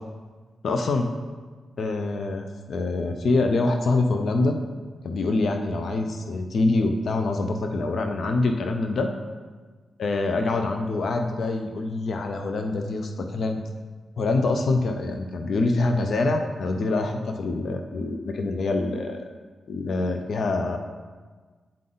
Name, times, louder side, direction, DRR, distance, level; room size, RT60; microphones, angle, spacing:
voice 1, 0.6-1.1 1.8-4.6 5.0-9.1 10.0-13.7 14.2-19.2 19.7-20.8, left 3 dB, 65° left, 5 dB, 0.5 m, -25 dB
8.7 x 3.8 x 3.9 m, 1.4 s
cardioid pair, 75°, 0 cm